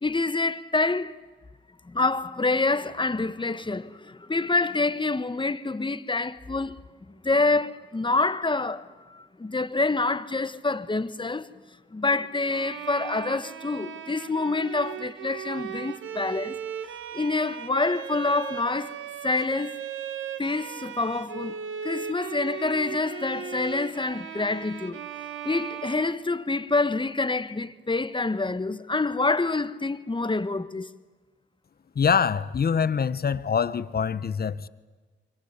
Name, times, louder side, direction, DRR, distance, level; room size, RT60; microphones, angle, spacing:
voice 1, 0.0-1.1 1.8-6.8 7.2-11.5 11.9-16.6 17.1-19.0 19.2-19.8 20.4-21.6 21.8-25.0 25.4-30.9, left 3 dB, 25° left, 1.5 m, -27 dB
Bowed string instrument, 12.5-26.7, right 8 dB, 80° right, 1.6 m, -37 dB
voice 2, 31.9-34.7, left 6 dB, 50° left, 1.2 m, -24 dB
28.0 x 23.5 x 8.3 m
cardioid pair, 55°, 20 cm